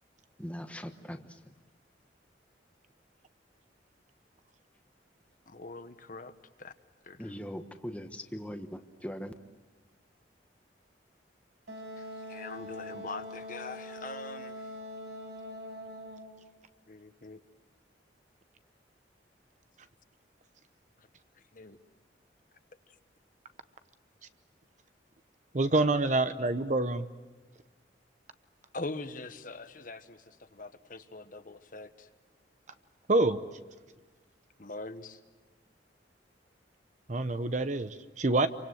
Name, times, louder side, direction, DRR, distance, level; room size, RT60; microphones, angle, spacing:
voice 1, 0.4-1.5 7.2-9.3, equal, 5° left, 6 dB, 1.2 m, -40 dB
voice 2, 5.5-6.3 6.6-6.7 7.0-7.3 12.0-14.8 16.9-17.4 21.0-21.1 21.3-21.8 22.9-23.0 28.7-32.1 34.6-35.2, left 3 dB, 50° left, 10 dB, 1.3 m, -43 dB
Wind instrument woodwind instrument, 11.7-16.4, left 1 dB, 75° right, 5.1 m, -43 dB
voice 3, 25.5-27.1 33.1-33.4 37.1-38.5, right 2 dB, 40° right, 11 dB, 0.8 m, -26 dB
28.0 x 24.5 x 7.9 m, 1.3 s
head